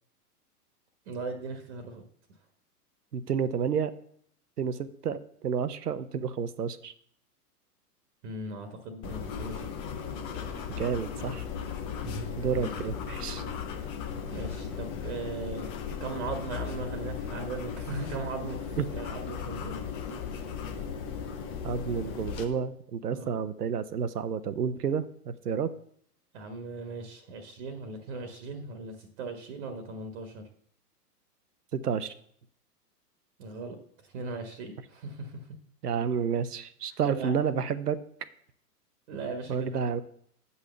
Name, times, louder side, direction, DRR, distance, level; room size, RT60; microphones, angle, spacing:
voice 1, 1.1-2.0 8.2-9.7 12.0-12.3 12.6-12.7 14.3-15.6 16.0-19.8 23.1-23.3 26.3-30.4 33.4-33.8 34.0-35.5 37.1-37.3 39.1-39.7, right 3 dB, 45° right, 6 dB, 1.5 m, -38 dB
voice 2, 3.1-3.9 4.6-6.9 10.8-11.5 12.4-13.4 18.8-18.9 21.6-25.7 31.7-32.1 35.8-38.0 39.5-40.0, right 7 dB, 70° right, 14 dB, 0.9 m, -30 dB
sound 1, 9.0-22.4, left 7 dB, 15° left, 0.4 m, -36 dB
8.3 x 5.6 x 6.8 m, 0.65 s
figure-of-eight pair, 105°, 48 cm